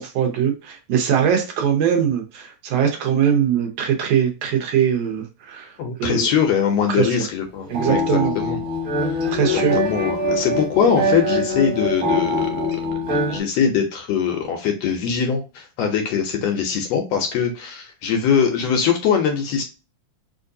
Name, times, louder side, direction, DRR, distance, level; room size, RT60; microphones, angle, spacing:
voice 1, 0.0-5.7 6.0-6.3 6.9-7.2 7.7-8.3 9.3-9.8, right 8 dB, 65° right, 3 dB, 1.8 m, -21 dB
voice 2, 5.8-8.6 9.0-9.2 9.5-12.7 13.1-19.6, left 7 dB, 75° left, 4 dB, 1.5 m, -22 dB
sound 1, 7.6-13.4, left 1 dB, 35° right, 1.3 m, -23 dB
4.5 x 2.5 x 2.6 m, 0.31 s
omnidirectional pair, 3.4 m